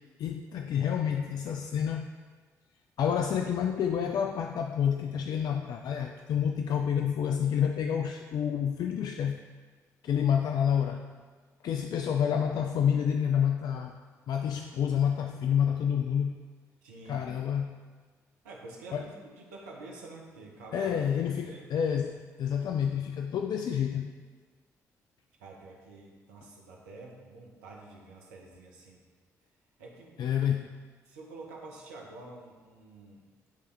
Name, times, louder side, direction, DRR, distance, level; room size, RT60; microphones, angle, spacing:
voice 1, 0.2-2.1 3.0-9.4 10.0-11.1 11.6-13.9 14.3-16.4 17.1-17.8 18.9-19.0 20.7-24.1 30.2-30.7, left 8 dB, 50° left, 4 dB, 0.3 m, -28 dB
voice 2, 16.8-17.3 18.4-21.0 21.3-21.7 25.4-29.0 29.8-30.3 31.0-33.3, right 2 dB, 75° right, -1 dB, 0.9 m, -48 dB
10.0 x 3.4 x 3.3 m, 1.5 s
figure-of-eight pair, 40°, 9 cm